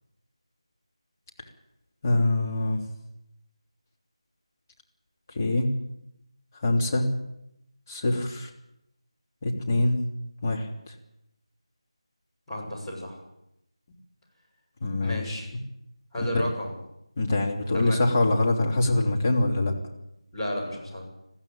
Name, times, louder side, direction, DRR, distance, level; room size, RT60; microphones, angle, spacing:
voice 1, 2.0-2.8 5.3-5.7 6.6-7.1 7.9-8.5 9.4-10.0 10.4-10.9 14.8-15.4 16.2-16.4 17.2-19.7, left 2 dB, 30° left, 0 dB, 3.1 m, -24 dB
voice 2, 12.5-13.2 15.0-15.5 16.1-16.7 17.7-18.0 20.3-21.1, left 1 dB, 10° left, -9 dB, 6.7 m, -32 dB
21.0 x 15.0 x 8.9 m, 0.82 s
figure-of-eight pair, 165°, 3 cm